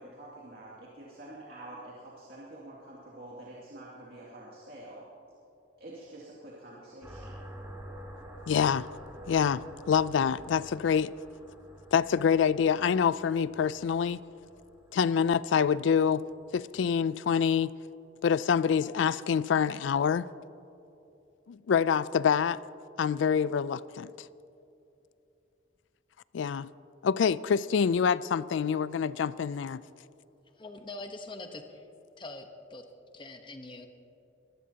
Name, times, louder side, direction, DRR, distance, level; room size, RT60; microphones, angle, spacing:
voice 1, 0.0-5.1 5.8-7.3, right 1 dB, 55° right, 2.4 m, -47 dB
sound 1, 7.0-16.6, equal, 15° right, 2.1 m, -49 dB
voice 2, 8.5-8.9 9.3-11.1 11.9-14.2 14.9-16.3 16.5-17.7 18.2-20.3 21.5-22.6 23.0-24.1 26.3-26.7 27.0-29.8, left 7 dB, 75° left, 0.3 m, -26 dB
voice 3, 30.6-31.8 32.2-32.8 33.1-33.9, left 2 dB, 25° left, 1.0 m, -43 dB
23.0 x 16.0 x 2.9 m
head